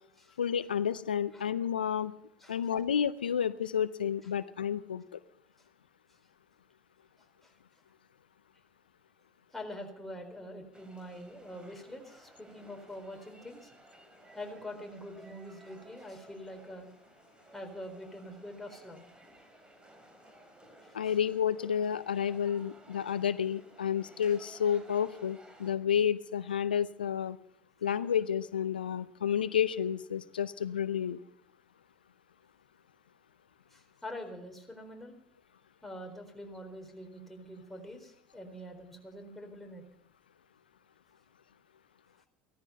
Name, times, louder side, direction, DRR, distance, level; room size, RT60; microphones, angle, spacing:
voice 1, 0.4-2.1 2.5-5.2 20.9-27.4 27.8-31.2, left 8 dB, 90° left, 15 dB, 0.5 m, -30 dB
voice 2, 7.2-7.5 9.5-13.7 14.3-16.9 17.5-19.1 20.8-21.2 33.7-35.2 35.8-39.8, left 1 dB, 5° left, 2 dB, 4.2 m, -45 dB
sound 1, 10.7-25.8, right 1 dB, 20° right, 3.7 m, -57 dB
16.0 x 14.0 x 5.6 m, 0.75 s
hypercardioid pair, 70°, 5 cm